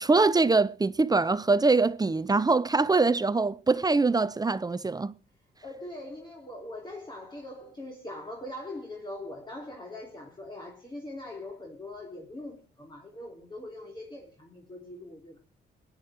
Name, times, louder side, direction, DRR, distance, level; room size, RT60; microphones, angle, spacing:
voice 1, 0.0-5.1, right 3 dB, 20° right, 0.7 m, -23 dB
voice 2, 5.6-15.4, left 1 dB, 25° left, 3.6 m, -42 dB
18.0 x 10.5 x 4.5 m
cardioid pair, 90°, 19 cm